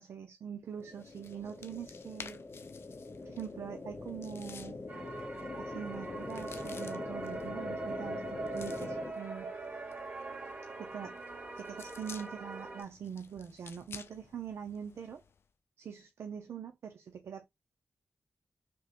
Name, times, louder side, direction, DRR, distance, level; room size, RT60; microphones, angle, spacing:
voice 1, 0.0-2.4 3.2-4.8 5.5-9.5 10.8-11.2 11.6-15.2 15.8-17.5, right 8 dB, 85° right, 0.5 m, -43 dB
sound 1, 0.8-15.4, left 6 dB, 65° left, 0.4 m, -54 dB
sound 2, 0.8-9.1, left 3 dB, 40° left, 0.8 m, -43 dB
sound 3, 4.9-12.8, right 3 dB, 55° right, 1.6 m, -42 dB
3.5 x 2.9 x 2.8 m
cardioid pair, 75°, 5 cm